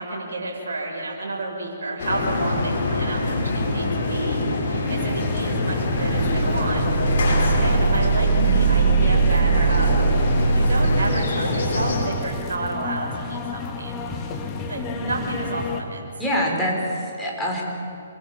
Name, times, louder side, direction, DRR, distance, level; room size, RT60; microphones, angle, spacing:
voice 1, 0.0-14.1 14.7-16.0, right 2 dB, 60° right, -1 dB, 6.3 m, -31 dB
sound 1, 2.0-12.0, left 2 dB, 50° left, 7.2 m, -25 dB
sound 2, 4.8-15.8, left 4 dB, 25° left, 2.6 m, -32 dB
sound 3, 5.9-12.4, right 5 dB, 80° right, 6.4 m, -22 dB
voice 2, 16.2-17.6, equal, 5° left, -3 dB, 6.0 m, -25 dB
27.5 x 22.5 x 7.3 m, 2.5 s
figure-of-eight pair, 130°, 0 cm